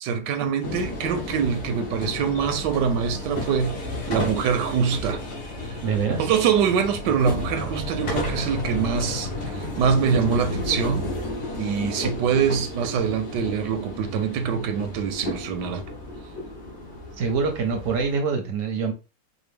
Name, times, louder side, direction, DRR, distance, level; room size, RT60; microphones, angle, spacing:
voice 1, 0.0-3.8 4.1-5.2 5.7-5.8 6.2-11.1 11.6-15.8, right 7 dB, 80° right, 1.2 m, -24 dB
sound 1, 0.6-18.2, left 2 dB, 70° left, 1.8 m, -32 dB
voice 2, 5.8-6.3 17.2-18.9, right 5 dB, 60° right, 0.9 m, -25 dB
5.0 x 2.2 x 3.4 m
omnidirectional pair, 1.9 m